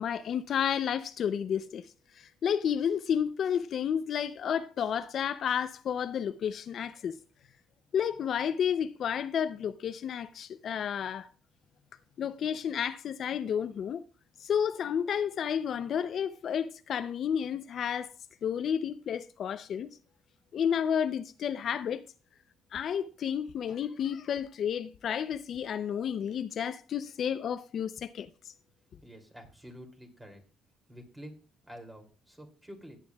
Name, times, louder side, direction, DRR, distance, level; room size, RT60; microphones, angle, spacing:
voice 1, 0.0-1.8 2.2-7.2 7.9-11.3 12.2-14.0 14.4-18.1 18.4-20.0 20.5-22.0 22.7-28.3, left 8 dB, 55° left, 0.5 m, -31 dB
voice 2, 29.0-30.4 30.9-31.3 31.6-33.0, equal, 10° right, 2.7 m, -48 dB
17.5 x 9.1 x 2.3 m
cardioid pair, 105°, 0 cm